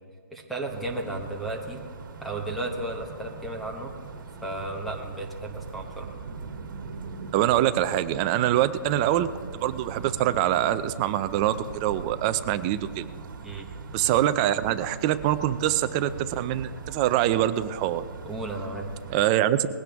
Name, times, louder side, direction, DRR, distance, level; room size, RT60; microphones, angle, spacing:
voice 1, 0.3-1.8 2.2-3.9 4.4-6.1 13.4-13.7 18.2-18.9, right 2 dB, ahead, 0 dB, 1.0 m, -34 dB
sound 1, 0.7-19.3, right 5 dB, 65° right, 1.8 m, -40 dB
voice 2, 7.3-9.3 9.5-13.0 13.9-18.0 19.1-19.8, right 12 dB, 20° right, 12 dB, 0.4 m, -24 dB
20.5 x 16.5 x 3.5 m, 2.1 s
hypercardioid pair, 165°, 11 cm